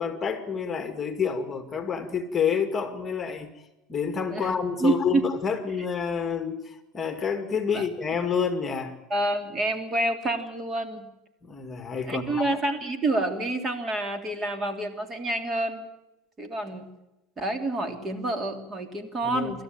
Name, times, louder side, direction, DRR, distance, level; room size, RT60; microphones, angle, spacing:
voice 1, 0.0-3.5 3.9-9.0 11.4-12.5 19.2-19.5, left 6 dB, 25° left, 8 dB, 2.2 m, -28 dB
voice 2, 9.1-11.1 12.1-15.8 16.4-16.9 17.4-19.6, right 2 dB, 25° right, 7 dB, 3.1 m, -28 dB
26.5 x 13.0 x 9.0 m, 0.95 s
supercardioid pair, 130°, 0 cm